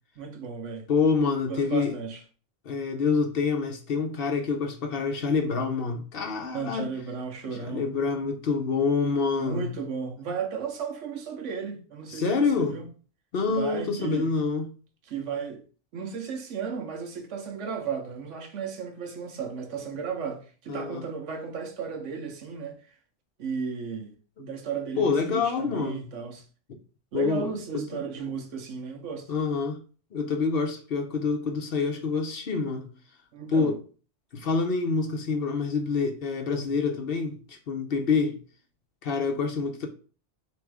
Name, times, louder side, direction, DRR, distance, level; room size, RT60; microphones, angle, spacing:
voice 1, 0.2-0.9 1.4-2.2 6.5-7.8 9.4-12.8 13.5-14.3 15.1-15.6 15.9-22.8 23.4-24.1 24.4-26.4 27.1-29.3 33.3-33.7, right 6 dB, 85° right, 1.2 m, -34 dB
voice 2, 0.9-1.9 2.6-6.9 7.4-9.7 12.1-12.8 13.3-14.7 20.7-21.0 25.0-26.1 27.1-27.9 29.3-29.8 30.1-32.9 33.5-33.8 34.3-38.4 39.0-39.9, left 4 dB, 60° left, 0.9 m, -27 dB
3.4 x 3.1 x 4.7 m
omnidirectional pair, 1.2 m